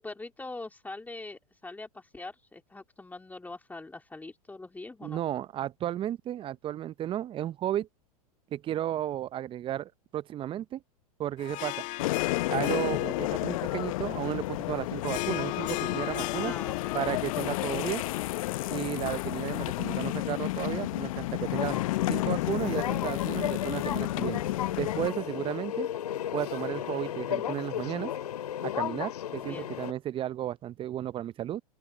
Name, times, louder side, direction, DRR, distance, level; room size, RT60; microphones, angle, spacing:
voice 1, 0.0-5.2 16.4-16.9 29.4-29.7, left 2 dB, 10° left, 3.0 m, -43 dB
voice 2, 5.0-7.9 8.5-10.8 11.2-11.8 12.5-16.5 16.9-18.0 18.7-21.8 22.1-24.4 24.8-25.9 26.3-28.1 28.6-31.6, right 12 dB, 25° right, 0.7 m, -33 dB
Harp, 11.4-20.0, left 18 dB, 40° left, 2.3 m, -38 dB
sound 1, 12.0-25.1, left 18 dB, 60° left, 0.9 m, -31 dB
sound 2, 21.6-29.9, left 10 dB, 75° left, 2.7 m, -34 dB
open air
hypercardioid pair, 100°, 20 cm